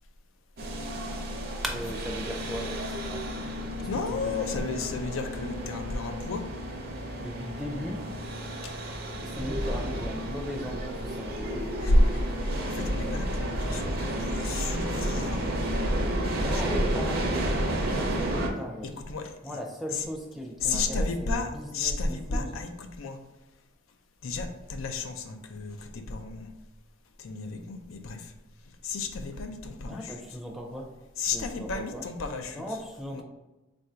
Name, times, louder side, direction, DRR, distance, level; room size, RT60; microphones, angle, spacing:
sound 1, 0.6-18.5, right 1 dB, 50° right, 0.6 m, -31 dB
voice 1, 1.6-4.7 7.2-8.0 9.2-11.7 16.3-18.9 19.4-22.6 29.8-30.9 31.3-32.0 32.5-33.2, equal, ahead, 1 dB, 0.5 m, -38 dB
voice 2, 3.9-6.5 8.6-8.7 11.8-12.0 12.4-15.6 18.8-19.6 20.6-23.2 24.2-26.5 27.2-28.3 28.8-30.1 31.2-32.6 33.1-33.2, left 3 dB, 90° left, 6 dB, 0.5 m, -32 dB
3.6 x 2.6 x 4.4 m, 1.1 s
head